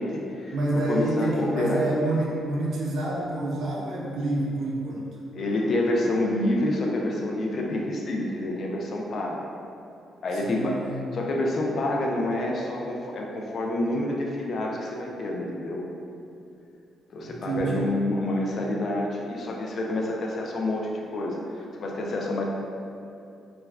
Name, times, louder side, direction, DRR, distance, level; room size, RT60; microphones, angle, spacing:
voice 1, 0.0-1.9 5.3-9.4 10.2-10.8 11.1-15.8 17.1-22.5, left 1 dB, 50° left, -1 dB, 0.3 m, -28 dB
voice 2, 0.5-5.1 10.3-11.1 17.2-17.9, right 2 dB, 70° right, -4 dB, 0.4 m, -28 dB
2.3 x 2.2 x 3.2 m, 2.6 s
cardioid pair, 90°, 0 cm